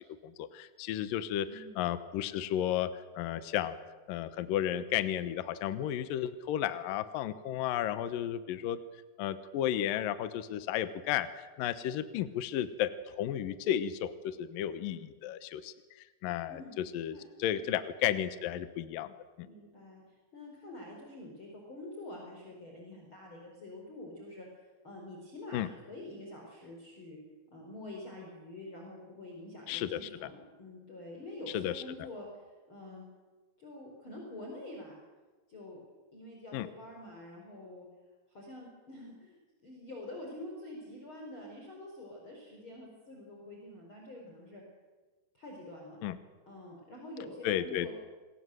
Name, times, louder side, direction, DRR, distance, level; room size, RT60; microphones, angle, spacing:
voice 1, 0.2-3.8 4.1-8.8 9.2-15.7 16.2-19.5 25.5-25.7 29.7-30.3 31.5-31.8 36.5-36.7 46.0-46.2 47.4-47.9, left 11 dB, 80° left, 11 dB, 2.0 m, -33 dB
voice 2, 1.4-1.8 16.5-16.7 17.1-17.2 17.5-17.8 19.4-20.0 20.3-24.5 24.8-27.2 27.5-33.1 33.6-35.0 35.5-35.8 36.1-37.9 38.3-44.6 45.3-46.0 46.5-47.9, left 1 dB, 25° left, -1 dB, 4.9 m, -47 dB
28.0 x 21.0 x 7.9 m, 1.3 s
omnidirectional pair, 5.6 m